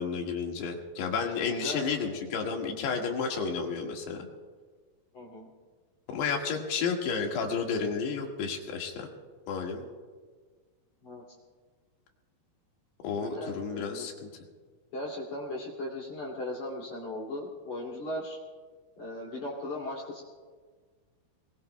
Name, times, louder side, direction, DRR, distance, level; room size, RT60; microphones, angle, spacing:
voice 1, 0.0-4.3 6.1-9.1 9.5-9.9 13.0-14.3, left 5 dB, 80° left, 1 dB, 3.9 m, -31 dB
voice 2, 1.6-2.1 5.1-5.5 11.0-11.2 13.2-14.1 14.9-18.4 19.0-20.2, left 1 dB, 50° left, -3 dB, 3.5 m, -37 dB
26.5 x 21.5 x 2.2 m, 1.5 s
omnidirectional pair, 4.7 m